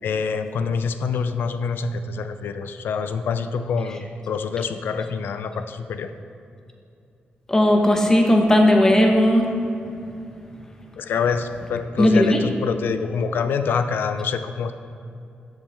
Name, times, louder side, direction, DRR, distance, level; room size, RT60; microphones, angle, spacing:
voice 1, 0.0-6.1 11.0-14.7, left 5 dB, 75° left, 9 dB, 0.5 m, -26 dB
voice 2, 7.5-9.5 12.0-12.4, left 1 dB, 15° left, 2 dB, 1.0 m, -16 dB
12.5 x 7.3 x 3.5 m, 2.6 s
wide cardioid pair, 150°, 4 cm